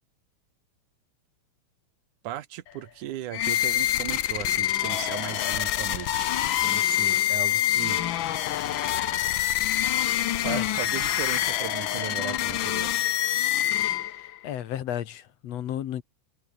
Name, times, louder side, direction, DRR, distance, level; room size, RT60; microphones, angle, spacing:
voice 1, 2.2-8.0 10.4-13.0, right 13 dB, 85° right, 2.6 m, -37 dB
sound 1, 3.3-14.4, left 12 dB, 85° left, 1.0 m, -26 dB
voice 2, 14.2-16.0, left 11 dB, 65° left, 2.2 m, -33 dB
omnidirectional pair, 3.4 m